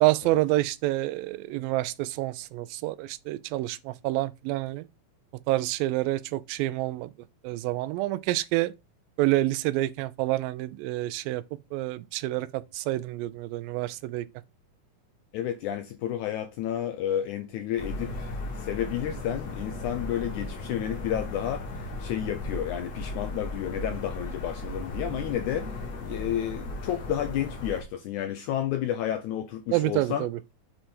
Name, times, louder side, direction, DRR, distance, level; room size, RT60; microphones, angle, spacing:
voice 1, 0.0-4.9 5.5-7.1 7.4-8.7 9.2-11.4 11.7-14.3 29.7-30.4, right 17 dB, 90° right, 2.4 m, -28 dB
voice 2, 15.3-30.3, left 11 dB, 80° left, 1.7 m, -31 dB
sound 1, 17.8-27.8, left 2 dB, 50° left, 2.3 m, -36 dB
7.5 x 3.3 x 4.4 m
omnidirectional pair, 4.1 m